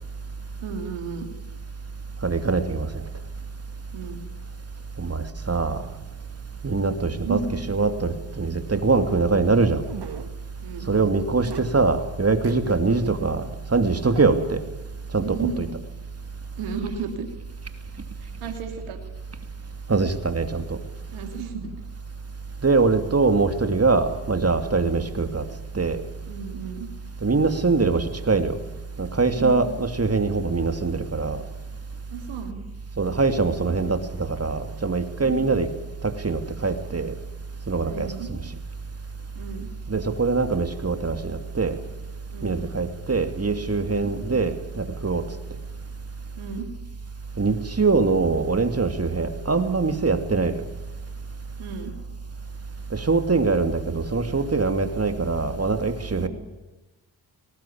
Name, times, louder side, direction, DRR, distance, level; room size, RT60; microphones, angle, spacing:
voice 1, 0.6-1.3 3.9-4.2 7.1-7.5 10.6-11.1 13.0-13.1 15.2-15.6 16.6-17.3 18.2-19.0 21.1-21.7 24.8-25.1 26.3-26.9 29.4-29.7 32.1-32.6 35.2-35.5 37.8-38.3 39.3-39.7 42.3-42.6 44.2-44.3 46.4-46.7 51.6-51.9 56.2-56.3, right 6 dB, 80° right, 5 dB, 3.1 m, -33 dB
voice 2, 2.2-2.9 5.0-5.8 6.6-7.4 7.7-9.8 10.9-13.5 13.7-14.6 15.1-15.7 19.9-20.8 22.6-25.4 25.7-26.0 27.2-28.6 29.0-31.4 33.0-35.7 36.0-37.1 37.7-38.4 39.9-41.7 42.4-45.2 47.4-50.6 52.9-56.3, right 4 dB, 30° right, 9 dB, 2.7 m, -23 dB
sound 1, 9.8-10.3 11.4-11.6 12.4-12.8 13.2-13.3 14.0-14.6, right 7 dB, 50° right, 2.1 m, -37 dB
19.0 x 19.0 x 8.8 m, 1.1 s
supercardioid pair, 50°, 49 cm